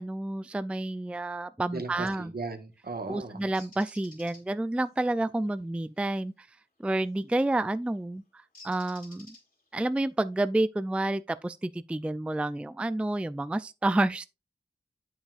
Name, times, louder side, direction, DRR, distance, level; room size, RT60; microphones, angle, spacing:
voice 1, 0.0-2.3 3.1-6.5 6.8-9.4 9.7-14.3, right 2 dB, 5° right, 0.3 m, -29 dB
voice 2, 1.7-3.4, right 3 dB, 65° right, 1.5 m, -37 dB
Bird, 3.5-4.4 7.0-7.3 8.5-9.7, left 2 dB, 55° left, 3.4 m, -51 dB
8.8 x 7.2 x 2.4 m
wide cardioid pair, 50°, 17 cm